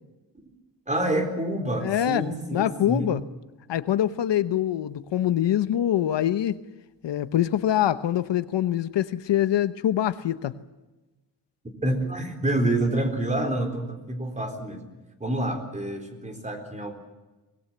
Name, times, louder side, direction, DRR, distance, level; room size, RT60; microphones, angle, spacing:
voice 1, 0.9-3.2 11.8-14.8 15.2-16.9, right 1 dB, 15° right, 5 dB, 3.9 m, -27 dB
voice 2, 1.8-3.2 3.7-6.6 7.0-10.5, left 11 dB, 85° left, 12 dB, 1.1 m, -24 dB
24.5 x 20.5 x 7.4 m, 1.1 s
wide cardioid pair, 155°, 42 cm